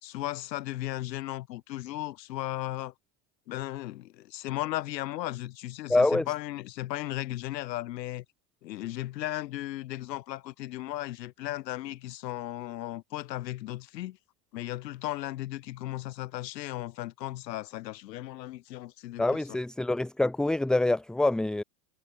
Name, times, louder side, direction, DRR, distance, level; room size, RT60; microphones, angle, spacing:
voice 1, 0.0-2.9 3.5-8.2 8.6-14.2 14.5-19.6, left 15 dB, 85° left, 3.8 m, -36 dB
voice 2, 5.9-6.2 19.2-21.6, left 2 dB, ahead, 0.4 m, -25 dB
supercardioid pair, 140°, 49 cm